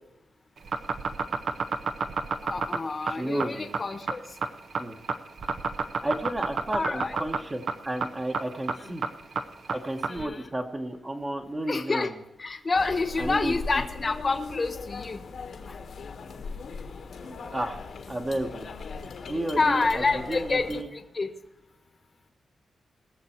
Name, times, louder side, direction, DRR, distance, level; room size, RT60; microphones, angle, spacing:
sound 1, 0.6-10.2, right 5 dB, 70° right, 0.8 m, -29 dB
voice 1, 2.4-4.2 6.7-7.1 8.8-9.0 10.1-10.5 11.7-12.1 12.4-15.2 15.7-15.8 19.6-21.3, left 3 dB, 40° left, 7 dB, 1.2 m, -28 dB
voice 2, 3.0-3.7 4.8-5.0 6.0-9.0 9.7-12.2 13.2-13.5 17.5-17.8 18.1-18.7 19.3-20.9, right 1 dB, 30° right, 1 dB, 1.3 m, -32 dB
sound 2, 12.7-20.8, left 4 dB, 75° left, 1.6 m, -39 dB
19.5 x 6.9 x 4.5 m, 0.91 s
cardioid pair, 70°, 0 cm